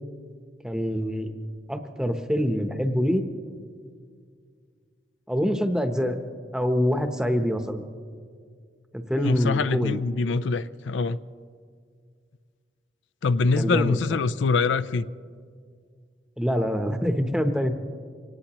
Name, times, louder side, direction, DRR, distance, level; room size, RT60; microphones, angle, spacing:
voice 1, 0.6-1.3 1.7-3.2 5.3-6.2 6.5-7.8 8.9-10.0 13.5-14.2 16.4-17.8, equal, 5° right, 6 dB, 0.8 m, -25 dB
voice 2, 9.2-11.2 13.2-15.1, left 4 dB, 80° left, 15 dB, 0.4 m, -24 dB
25.0 x 18.0 x 3.0 m, 2.1 s
head